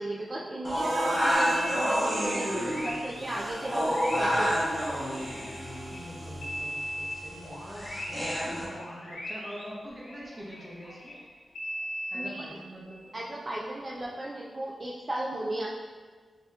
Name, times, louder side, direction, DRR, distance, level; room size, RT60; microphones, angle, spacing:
voice 1, 0.0-4.7 12.1-12.5 13.1-15.7, right 1 dB, 35° right, -5 dB, 0.4 m, -35 dB
sound 1, 0.6-8.7, equal, 5° left, 1.0 m, -30 dB
Harmonica, 0.7-8.6, right 2 dB, 85° right, 0.5 m, -41 dB
Content warning, 1.3-6.0 6.4-11.2 11.5-13.2 14.0-14.1, equal, 70° left, 0.9 m, -39 dB
voice 2, 5.9-11.2 12.1-13.1, equal, 15° right, -5 dB, 1.0 m, -44 dB
6.5 x 2.9 x 2.3 m, 1.5 s
wide cardioid pair, 120°, 0 cm